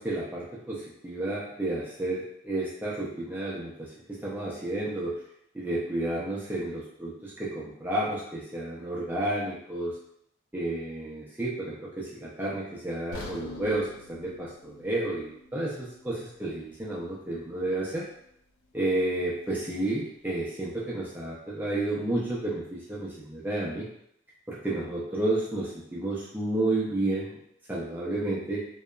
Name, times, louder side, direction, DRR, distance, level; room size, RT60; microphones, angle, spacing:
voice 1, 0.0-5.2 5.5-10.0 10.5-18.1 18.7-23.9 24.5-27.3 27.7-28.7, right 2 dB, 10° right, -6 dB, 0.4 m, -31 dB
sound 1, 13.1-17.2 17.5-17.7 18.3-18.4, left 3 dB, 85° left, 0.4 m, -46 dB
2.8 x 2.2 x 2.3 m, 0.73 s
head